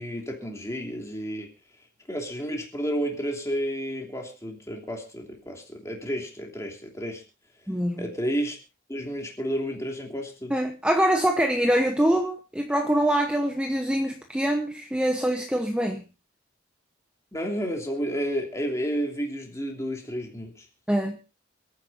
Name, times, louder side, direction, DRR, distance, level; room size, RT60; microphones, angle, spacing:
voice 1, 0.0-1.5 2.1-7.2 8.0-8.6 8.9-10.5 17.3-20.7, equal, 15° left, 1 dB, 3.0 m, -31 dB
voice 2, 7.7-8.1 10.5-16.0 20.9-21.2, right 1 dB, 5° right, 4 dB, 0.9 m, -24 dB
28.0 x 9.5 x 2.6 m, 0.30 s
head